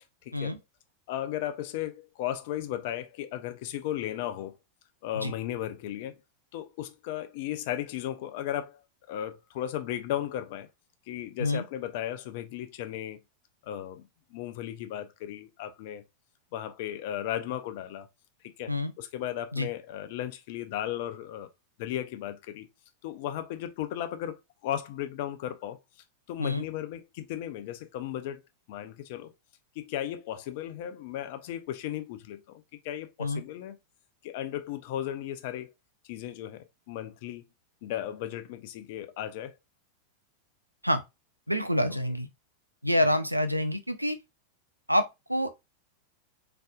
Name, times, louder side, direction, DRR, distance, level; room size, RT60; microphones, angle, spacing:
voice 1, 0.2-0.6 1.1-4.5 5.0-6.2 6.5-8.8 9.1-10.7 11.1-13.2 13.6-14.0 14.3-16.0 16.5-18.1 18.6-21.5 21.8-22.7 23.0-25.8 26.3-28.4 28.7-29.3 29.8-33.8 34.2-35.7 36.1-37.4 37.8-39.6, left 11 dB, 50° left, 0.6 m, -35 dB
voice 2, 41.5-42.3 42.8-44.2 44.9-45.5, left 1 dB, 90° right, 0.5 m, -27 dB
3.9 x 3.4 x 2.5 m
figure-of-eight pair, 90°, 0 cm